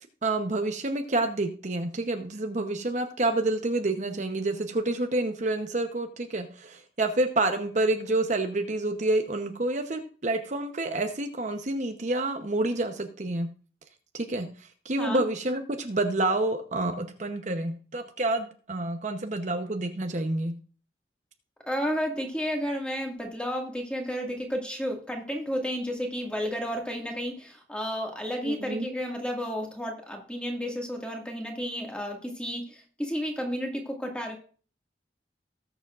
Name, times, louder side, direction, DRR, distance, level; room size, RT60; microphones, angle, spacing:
voice 1, 0.2-13.5 14.1-20.5 28.4-28.9, right 2 dB, 40° right, 6 dB, 0.9 m, -28 dB
voice 2, 21.7-34.4, equal, 5° left, 1 dB, 1.9 m, -32 dB
19.0 x 7.1 x 2.5 m, 0.41 s
head